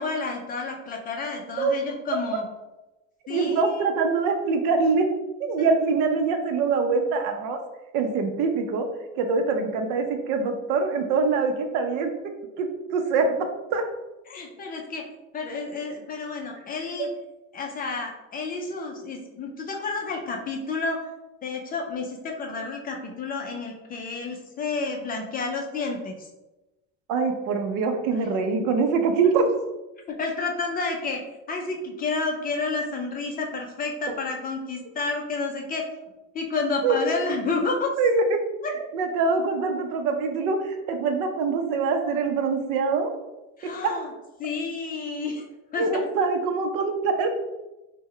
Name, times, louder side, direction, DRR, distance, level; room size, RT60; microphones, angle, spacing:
voice 1, 0.0-2.4 3.3-3.8 5.6-5.7 14.3-15.1 15.3-17.1 17.5-21.0 21.4-26.3 30.2-31.2 31.5-35.9 36.3-37.9 38.6-38.7 43.6-44.1 44.4-45.4 45.7-46.1, left 3 dB, 25° left, 1 dB, 0.4 m, -30 dB
voice 2, 3.3-5.1 5.4-7.6 7.9-8.9 9.2-12.1 12.6-13.8 17.0-17.1 27.1-29.4 36.8-37.0 38.0-38.4 38.7-43.1 43.6-44.0 45.8-47.3, right 4 dB, 70° right, 5 dB, 0.6 m, -24 dB
3.2 x 2.2 x 3.6 m, 1.0 s
cardioid pair, 140°, 33 cm